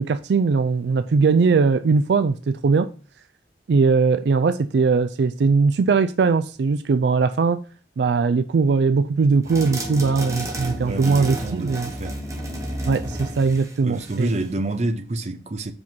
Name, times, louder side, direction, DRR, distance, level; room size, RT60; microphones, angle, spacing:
voice 1, 0.0-2.9 3.7-7.6 8.0-11.9 12.9-14.3, right 4 dB, 75° right, 0.4 m, -20 dB
sound 1, 9.5-14.5, right 1 dB, 20° right, 1.2 m, -32 dB
voice 2, 10.8-12.2 13.8-15.7, right 2 dB, 40° right, 0.7 m, -28 dB
5.4 x 5.1 x 6.0 m
head